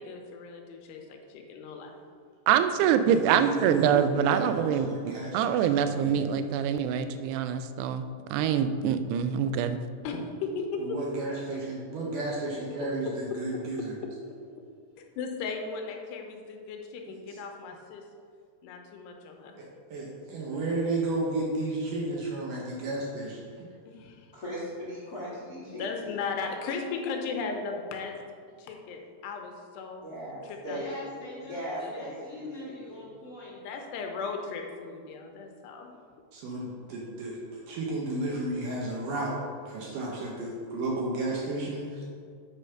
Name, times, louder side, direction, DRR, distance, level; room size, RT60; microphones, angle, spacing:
voice 1, 0.0-2.0 10.0-11.0 13.1-13.2 15.2-18.0 18.6-19.6 23.9-24.3 25.6-28.1 28.6-30.0 30.4-30.8 33.6-36.0, left 4 dB, 90° left, 3 dB, 3.0 m, -36 dB
voice 2, 2.5-4.9 5.3-8.0 8.3-9.8, right 8 dB, 90° right, 10 dB, 2.7 m, -25 dB
voice 3, 3.1-6.3 10.8-13.9 17.1-17.4 19.6-23.7 36.3-39.4 39.7-42.0, right 2 dB, 70° right, -3 dB, 2.2 m, -33 dB
voice 4, 24.3-26.2 30.0-30.9 31.5-33.1, equal, 50° left, -8 dB, 1.1 m, -38 dB
voice 5, 30.6-33.6, left 1 dB, 25° left, -8 dB, 2.0 m, -42 dB
8.2 x 5.3 x 5.7 m, 2.2 s
omnidirectional pair, 4.7 m